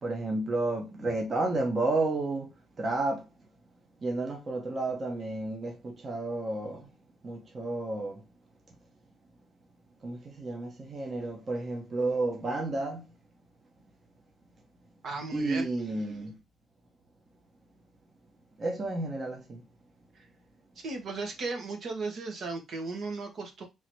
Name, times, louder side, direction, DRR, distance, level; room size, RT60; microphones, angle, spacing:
voice 1, 0.0-3.3 4.0-6.9 7.2-8.2 10.0-13.1 15.3-16.4 18.6-19.6, right 2 dB, 40° right, 1.1 m, -31 dB
voice 2, 15.0-15.7 20.1-20.3 20.8-23.7, right 3 dB, 65° right, 1.3 m, -36 dB
3.8 x 2.9 x 3.1 m
cardioid pair, 90°, 0 cm